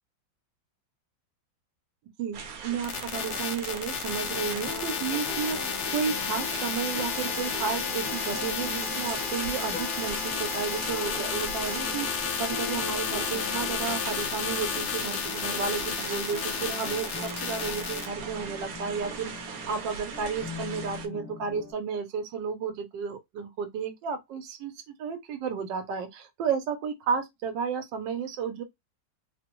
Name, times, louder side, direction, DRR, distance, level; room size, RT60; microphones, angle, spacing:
voice 1, 2.2-12.1 12.4-28.6, right 6 dB, 85° right, 1.3 m, -32 dB
sound 1, 2.3-21.1, right 6 dB, 65° right, 1.0 m, -40 dB
sound 2, 2.8-18.1, left 7 dB, 75° left, 0.7 m, -32 dB
sound 3, 4.2-21.7, left 2 dB, 20° left, 0.9 m, -41 dB
3.6 x 2.0 x 2.9 m
omnidirectional pair, 1.9 m